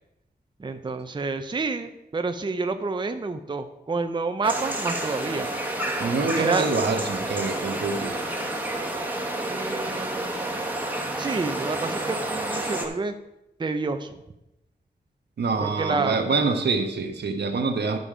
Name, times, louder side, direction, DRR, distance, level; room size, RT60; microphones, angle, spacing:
voice 1, 0.6-5.5 6.3-6.7 9.5-10.6 11.2-13.1 13.6-14.2 15.6-16.2, right 4 dB, 25° right, 7 dB, 0.5 m, -29 dB
sound 1, 4.4-12.9, right 1 dB, 10° right, 1.3 m, -29 dB
voice 2, 6.0-8.2 15.4-18.0, right 4 dB, 80° right, 5 dB, 1.1 m, -26 dB
12.5 x 5.3 x 4.9 m, 0.88 s
wide cardioid pair, 115°, 17 cm